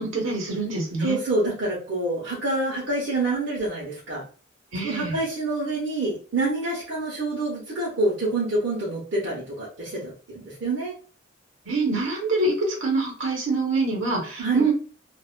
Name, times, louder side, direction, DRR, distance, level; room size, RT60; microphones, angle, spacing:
voice 1, 0.0-1.2 4.7-5.2 11.6-14.7, right 3 dB, 90° right, -1 dB, 1.0 m, -25 dB
voice 2, 1.0-4.2 4.8-10.9 14.4-14.6, right 2 dB, 65° right, -7 dB, 0.8 m, -27 dB
2.4 x 2.1 x 2.4 m, 0.38 s
head